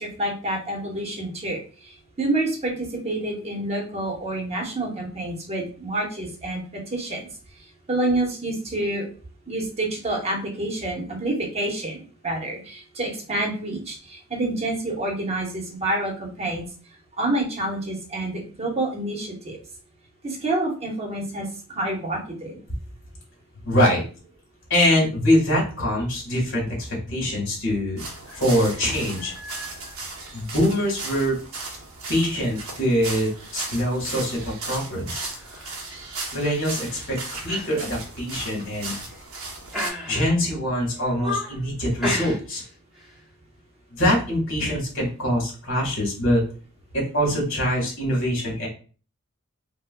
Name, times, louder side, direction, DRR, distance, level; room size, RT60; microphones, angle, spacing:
voice 1, 0.0-1.6 2.2-7.3 7.9-9.1 9.5-16.6 17.2-19.6 20.2-22.6, right 1 dB, 30° right, 0 dB, 0.9 m, -28 dB
voice 2, 23.6-24.0 24.7-29.9 30.3-31.4 32.1-35.3 36.3-38.9 40.1-42.6 43.9-46.4 46.9-48.7, equal, 65° left, -2 dB, 1.7 m, -24 dB
sound 1, 28.0-39.9, right 3 dB, 80° right, 0.9 m, -36 dB
sound 2, 35.3-35.7 36.1-36.4 36.8-37.1 37.5-37.7 38.0-38.1 38.7-39.2 39.7-40.5 40.9-41.6 42.0-42.7 42.9-43.2, left 1 dB, ahead, 0.9 m, -32 dB
4.5 x 2.2 x 2.2 m, 0.38 s
head